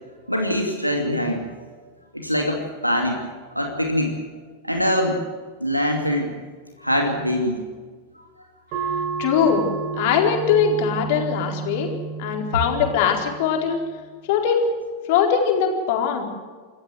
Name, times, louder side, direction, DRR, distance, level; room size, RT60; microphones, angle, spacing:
voice 1, 0.3-1.5 2.1-3.3 3.5-4.2 4.6-5.2 5.6-6.3 6.8-7.6, equal, 90° right, 3 dB, 2.5 m, -23 dB
sound 1, 8.7-13.8, right 5 dB, 45° right, 4.6 m, -31 dB
voice 2, 9.2-9.6 9.9-13.8 14.3-14.7 15.1-16.2, left 7 dB, 50° left, 3 dB, 4.2 m, -21 dB
27.0 x 14.0 x 7.9 m, 1.5 s
figure-of-eight pair, 90°, 0 cm